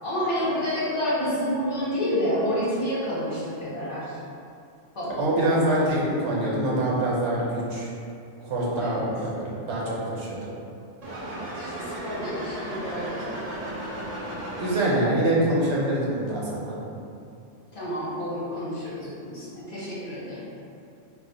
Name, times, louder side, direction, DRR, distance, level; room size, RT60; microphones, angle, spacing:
voice 1, 0.0-4.2 4.9-5.2 8.8-9.1 11.2-13.4 17.7-20.4, equal, 50° left, -9 dB, 1.0 m, -29 dB
voice 2, 5.2-7.9 8.4-10.5 14.6-16.7, right 1 dB, 75° right, -5 dB, 1.0 m, -25 dB
sound 1, 11.0-15.2, right 1 dB, 50° right, 0.4 m, -35 dB
2.4 x 2.1 x 3.8 m, 2.6 s
omnidirectional pair, 1.2 m